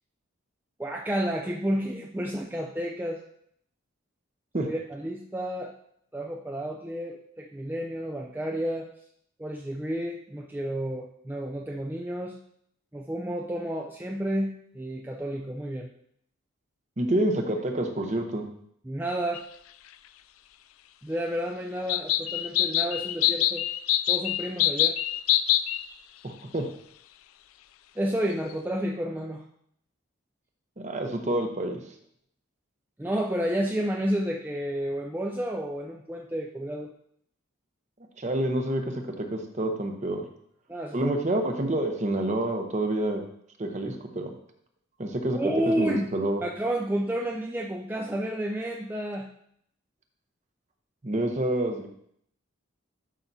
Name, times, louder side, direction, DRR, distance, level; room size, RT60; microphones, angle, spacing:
voice 1, 0.8-3.2 4.6-5.7 6.1-8.9 9.4-12.4 12.9-15.9 18.8-19.4 21.0-23.6 24.1-25.0 28.0-29.4 33.0-36.9 40.7-41.2 45.3-46.1 46.4-49.3, right 1 dB, 10° right, 0 dB, 0.4 m, -31 dB
voice 2, 17.0-18.5 26.2-26.7 30.8-31.8 38.2-40.2 40.9-43.2 43.6-44.3 45.0-45.4 45.8-46.4 51.0-51.9, right 1 dB, 35° right, 4 dB, 0.8 m, -28 dB
sound 1, 19.3-19.4 21.9-25.8, left 13 dB, 80° left, 0.3 m, -25 dB
11.0 x 5.7 x 2.7 m, 0.70 s
head